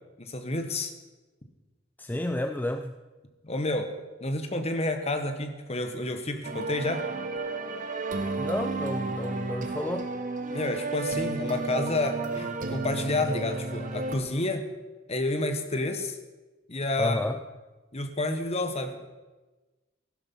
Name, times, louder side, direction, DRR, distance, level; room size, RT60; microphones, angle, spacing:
voice 1, 0.2-0.9 3.4-3.9 4.2-7.1 10.5-14.6 15.1-16.2 16.7-17.2 17.9-19.1, left 2 dB, 35° left, 7 dB, 1.5 m, -30 dB
voice 2, 2.0-2.9 8.4-10.1 17.0-17.4, left 1 dB, 10° left, 7 dB, 0.5 m, -30 dB
sound 1, 6.4-14.2, right 3 dB, 45° right, 1.4 m, -32 dB
15.5 x 11.5 x 5.6 m, 1.2 s
head